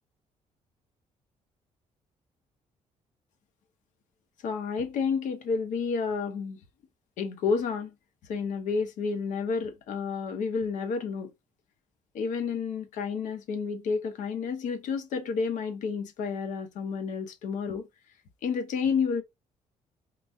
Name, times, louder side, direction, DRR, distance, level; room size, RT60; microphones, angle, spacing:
voice 1, 4.4-6.6 7.2-7.9 8.3-11.3 12.1-17.9 18.4-19.2, left 5 dB, 70° left, 0.9 m, -30 dB
3.9 x 2.2 x 3.6 m
cardioid pair, 175°, 13 cm